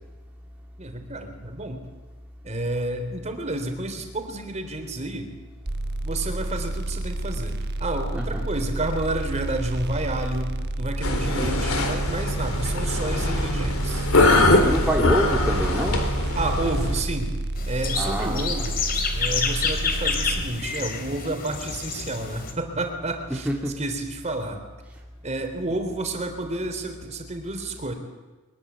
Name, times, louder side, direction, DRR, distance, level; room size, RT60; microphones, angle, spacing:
voice 1, 0.8-1.8 2.4-5.3 6.0-14.7 16.3-17.4 17.7-18.9 19.1-23.5 23.8-24.6 25.2-27.9, right 2 dB, 30° right, 5 dB, 3.7 m, -30 dB
sound 1, 5.7-20.4, right 1 dB, 50° right, 1.1 m, -30 dB
sound 2, 11.0-17.0, left 2 dB, 70° left, 4.0 m, -22 dB
voice 2, 14.5-16.0 18.0-18.5 23.3-23.8, right 1 dB, 5° right, -2 dB, 2.3 m, -26 dB
sound 3, 17.6-22.5, left 5 dB, 40° left, 3.4 m, -29 dB
23.5 x 21.5 x 8.4 m, 1.2 s
head